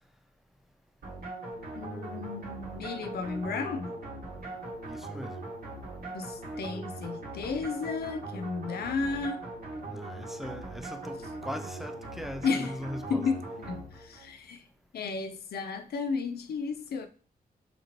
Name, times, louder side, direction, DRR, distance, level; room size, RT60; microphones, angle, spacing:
sound 1, 1.0-14.3, right 2 dB, 75° right, 2.0 m, -40 dB
voice 1, 1.7-4.0 6.1-9.4 12.4-12.8 13.1-14.7 14.9-17.1, left 5 dB, 80° left, 0.4 m, -33 dB
voice 2, 4.8-5.4 9.9-13.2, equal, ahead, 0.4 m, -40 dB
5.1 x 2.8 x 3.0 m
cardioid pair, 75°, 16 cm